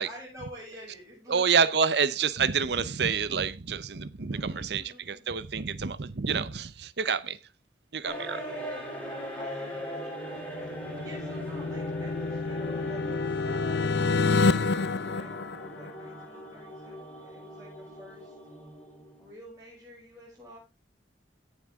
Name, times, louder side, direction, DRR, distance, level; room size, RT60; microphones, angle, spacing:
voice 1, 0.0-1.6 4.3-5.4 8.2-10.3 10.6-18.3 19.2-20.6, equal, 15° right, 6.6 m, -49 dB
voice 2, 1.3-7.4 7.9-8.4, right 6 dB, 65° right, 0.7 m, -28 dB
sound 1, 8.0-19.3, equal, 10° left, 3.4 m, -40 dB
sound 2, 10.4-16.2, left 4 dB, 65° left, 0.6 m, -28 dB
17.0 x 7.4 x 3.6 m
head